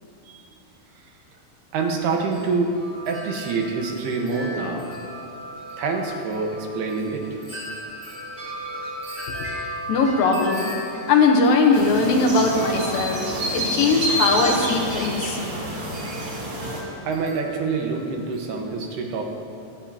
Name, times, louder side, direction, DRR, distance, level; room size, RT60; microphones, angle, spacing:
voice 1, 1.7-2.8 3.1-4.9 5.8-7.4 17.0-19.2, right 4 dB, 85° right, 1 dB, 3.2 m, -26 dB
Wind chime, 1.8-18.6, equal, 30° right, 1.6 m, -37 dB
voice 2, 9.9-13.2 13.5-15.4, left 3 dB, 70° left, 1 dB, 2.6 m, -20 dB
sound 1, 11.7-16.8, right 1 dB, 50° right, 3.3 m, -28 dB
25.0 x 9.9 x 2.9 m, 2.6 s
omnidirectional pair, 4.5 m